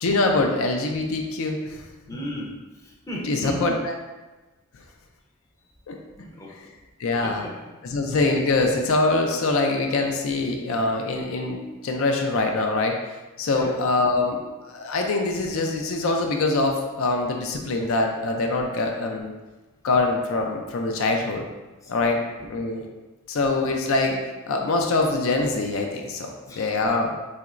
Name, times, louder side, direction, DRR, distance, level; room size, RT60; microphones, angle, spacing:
voice 1, 0.0-1.9 3.3-3.9 5.9-6.0 7.0-7.4 7.9-13.0 13.4-19.3 19.8-21.5 21.9-22.2 22.5-22.8 23.3-24.2 24.5-27.1, left 2 dB, 70° left, 2 dB, 0.4 m, -24 dB
voice 2, 2.1-3.7 6.2-6.7 7.2-7.5 13.5-13.8 21.8-22.2 26.5-26.7, equal, 15° left, -3 dB, 0.5 m, -36 dB
4.2 x 2.9 x 2.4 m, 1.2 s
head